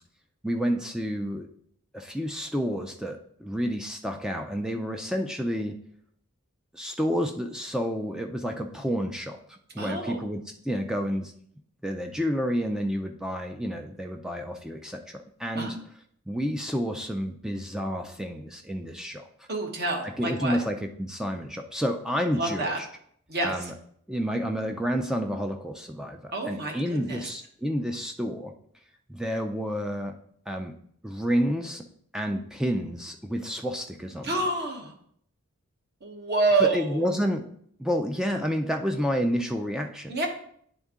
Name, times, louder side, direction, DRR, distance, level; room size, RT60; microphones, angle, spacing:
voice 1, 0.4-1.5 1.9-5.7 6.7-11.3 11.8-15.8 16.3-19.2 20.0-22.9 23.4-23.7 24.1-28.5 29.1-30.1 30.5-30.7 31.0-31.8 32.1-34.4 36.6-37.4 37.8-40.3, equal, 5° right, 4 dB, 0.4 m, -30 dB
voice 2, 9.8-10.2 15.5-15.7 19.5-20.6 22.3-22.8 23.3-23.7 26.3-27.3 34.2-34.9 36.0-37.1 40.1-40.3, right 3 dB, 45° right, 1 dB, 1.1 m, -28 dB
9.5 x 3.6 x 3.6 m, 0.65 s
head